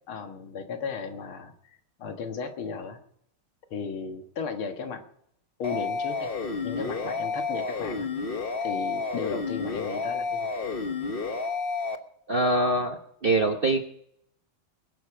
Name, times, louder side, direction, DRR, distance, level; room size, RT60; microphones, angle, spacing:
voice 1, 0.1-3.0 3.7-5.0 5.6-6.4 6.6-8.1 8.6-10.5, left 5 dB, 80° left, 6 dB, 2.4 m, -35 dB
sound 1, 5.6-12.0, left 4 dB, 35° left, 1.0 m, -30 dB
voice 2, 12.3-13.8, right 2 dB, 45° right, 3 dB, 0.7 m, -24 dB
21.0 x 11.5 x 5.0 m, 0.71 s
omnidirectional pair, 2.3 m